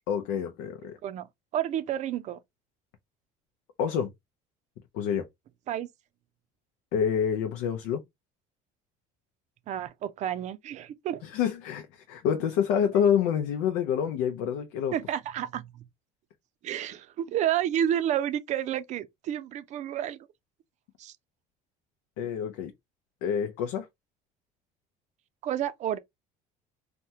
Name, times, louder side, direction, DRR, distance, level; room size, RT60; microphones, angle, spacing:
voice 1, 0.1-1.0 3.8-4.1 4.9-5.3 6.9-8.0 11.2-14.9 22.2-22.7 23.2-23.9, left 8 dB, 90° left, 0.6 m, -27 dB
voice 2, 1.5-2.4 5.7-5.9 9.7-11.2 14.9-15.8 16.6-20.3 21.0-21.1 25.4-26.0, right 10 dB, 45° right, 0.4 m, -30 dB
3.4 x 2.2 x 2.7 m
cardioid pair, 120°, 16 cm